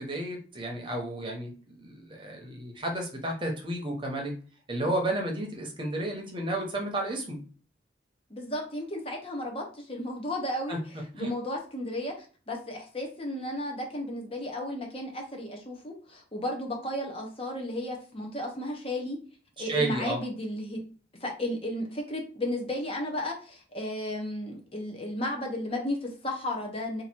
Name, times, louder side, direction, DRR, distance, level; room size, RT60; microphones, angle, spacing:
voice 1, 0.0-4.3 4.7-7.4 10.7-10.8 11.2-11.3 19.6-20.2, right 1 dB, 25° right, 1 dB, 0.8 m, -32 dB
voice 2, 8.3-19.2 19.6-20.8 21.2-27.0, left 1 dB, 30° left, 1 dB, 0.8 m, -34 dB
2.9 x 2.6 x 4.3 m, 0.39 s
head